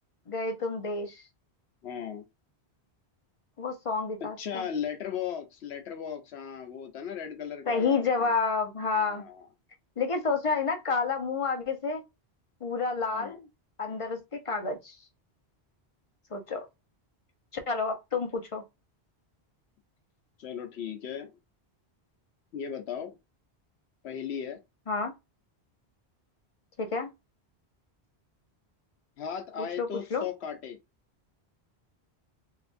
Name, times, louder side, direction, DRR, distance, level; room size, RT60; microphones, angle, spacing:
voice 1, 0.3-1.2 3.6-4.6 7.7-9.3 10.0-12.0 12.6-13.5 13.8-15.0 16.3-16.7 17.7-18.6 24.9-25.1 26.8-27.1 29.8-30.3, left 4 dB, 35° left, 0.7 m, -29 dB
voice 2, 1.8-2.2 4.2-8.3 8.9-9.4 13.1-13.4 20.4-21.3 22.5-23.2 24.0-24.6 29.2-30.8, left 8 dB, 80° left, 1.0 m, -37 dB
3.3 x 2.8 x 2.5 m
omnidirectional pair, 1.1 m